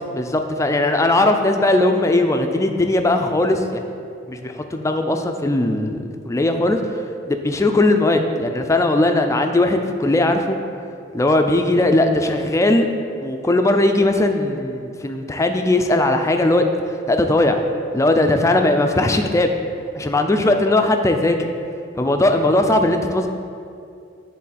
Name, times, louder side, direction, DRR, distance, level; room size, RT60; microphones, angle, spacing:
voice 1, 0.1-3.9 4.3-7.0 7.3-10.6 11.1-12.9 13.2-16.6 17.1-17.6 17.9-19.5 19.9-21.4 22.0-23.3, left 2 dB, 15° left, 5 dB, 0.4 m, -18 dB
9.8 x 3.7 x 4.2 m, 2.4 s
head